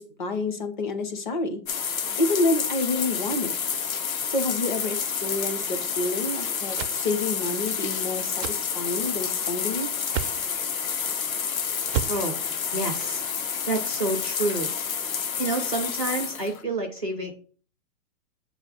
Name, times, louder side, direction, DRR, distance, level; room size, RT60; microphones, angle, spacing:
voice 1, 0.0-1.6 2.2-3.5 4.3-9.9, left 2 dB, 30° left, 7 dB, 0.7 m, -28 dB
sound 1, 1.7-16.6, left 6 dB, 55° left, 1.0 m, -29 dB
sound 2, 6.8-7.0 8.4-8.6 10.1-10.4 11.9-12.2, right 11 dB, 85° right, 0.6 m, -29 dB
voice 2, 12.7-13.2 13.7-14.7 15.4-17.3, right 2 dB, 25° right, 0 dB, 0.4 m, -28 dB
7.7 x 3.2 x 5.4 m, 0.42 s
hypercardioid pair, 175°, 48 cm